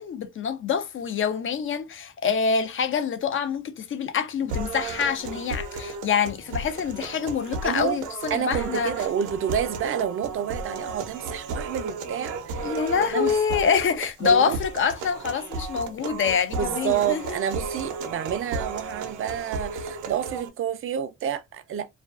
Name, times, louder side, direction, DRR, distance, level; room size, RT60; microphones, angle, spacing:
voice 1, 0.0-8.9 12.6-17.4, left 6 dB, 45° left, 0.5 m, -26 dB
sound 1, 4.5-20.5, right 4 dB, 90° right, 0.6 m, -34 dB
voice 2, 7.6-8.0 8.3-12.8 13.1-13.6 14.2-14.6 16.6-21.9, right 9 dB, 45° right, 0.4 m, -29 dB
2.3 x 2.3 x 2.3 m
cardioid pair, 90°, 30 cm